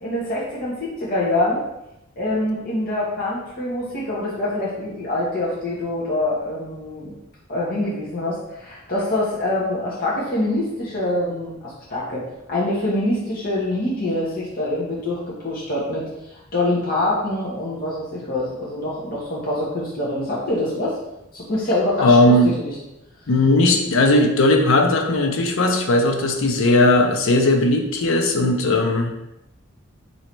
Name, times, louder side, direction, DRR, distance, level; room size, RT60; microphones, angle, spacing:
voice 1, 0.0-1.6 2.2-7.1 7.5-21.0 21.3-22.7, left 1 dB, 45° left, -7 dB, 0.9 m, -25 dB
voice 2, 22.0-22.6 23.3-29.1, left 2 dB, 65° left, 4 dB, 0.5 m, -17 dB
3.1 x 2.7 x 4.4 m, 0.90 s
head